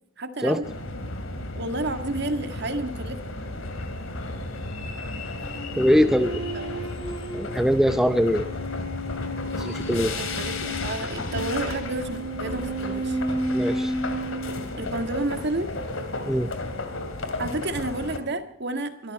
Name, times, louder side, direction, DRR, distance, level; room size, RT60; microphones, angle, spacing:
voice 1, 0.2-0.7 1.6-3.2 6.5-6.9 10.2-13.2 14.8-15.7 17.4-19.1, right 2 dB, 55° right, 8 dB, 1.8 m, -30 dB
sound 1, 0.6-18.2, left 2 dB, 70° left, 2.6 m, -33 dB
sound 2, 5.7-15.3, right 1 dB, 25° left, 6.6 m, -33 dB
voice 2, 5.8-6.3 7.3-8.5 9.6-10.1 13.5-13.9 16.3-16.5, equal, ahead, 10 dB, 0.5 m, -22 dB
23.0 x 13.5 x 4.3 m, 0.67 s
head